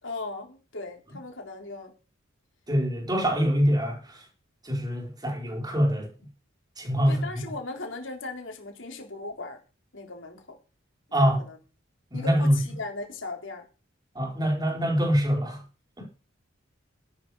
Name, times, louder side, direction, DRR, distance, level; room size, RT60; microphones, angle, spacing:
voice 1, 0.0-1.9 7.1-9.6 9.9-10.6 11.1-11.6 12.1-13.6, left 3 dB, 65° left, 3.9 m, -38 dB
voice 2, 2.7-4.2 4.6-6.1 6.8-7.3 11.1-11.4 12.1-12.6 14.1-15.6 16.0-16.1, equal, 20° right, 4.5 m, -24 dB
14.0 x 11.5 x 4.9 m
head